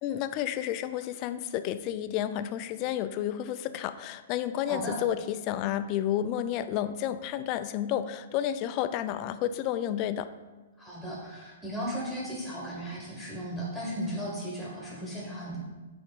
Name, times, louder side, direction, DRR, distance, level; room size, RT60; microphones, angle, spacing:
voice 1, 0.0-10.3, left 11 dB, 35° left, 12 dB, 0.3 m, -31 dB
voice 2, 4.6-5.0 10.8-15.6, equal, 5° right, -5 dB, 1.6 m, -36 dB
6.9 x 3.5 x 5.2 m, 1.2 s
figure-of-eight pair, 115°, 0 cm